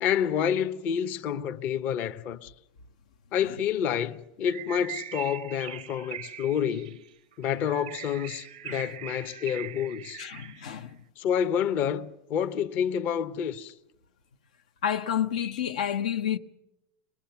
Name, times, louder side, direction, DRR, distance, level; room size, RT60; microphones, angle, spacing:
voice 1, 0.0-2.5 3.3-7.0 7.4-10.2 11.2-13.7, left 8 dB, 45° left, 0.9 m, -28 dB
Bird, 4.4-10.8, right 12 dB, 90° right, 0.7 m, -42 dB
voice 2, 10.2-11.0 14.8-16.4, left 9 dB, 85° left, 0.9 m, -30 dB
24.5 x 20.0 x 5.9 m
supercardioid pair, 125°, 4 cm